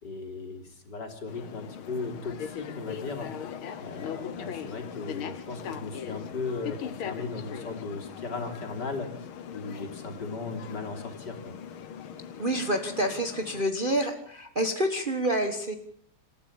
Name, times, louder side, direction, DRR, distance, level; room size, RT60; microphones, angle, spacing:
voice 1, 0.0-3.3 3.8-11.6, left 3 dB, 55° left, 3 dB, 3.7 m, -37 dB
sound 1, 1.3-13.6, left 8 dB, 85° left, 2.1 m, -40 dB
voice 2, 12.4-15.8, right 1 dB, 30° right, 5 dB, 1.4 m, -28 dB
27.5 x 13.5 x 7.2 m, 0.63 s
omnidirectional pair, 2.3 m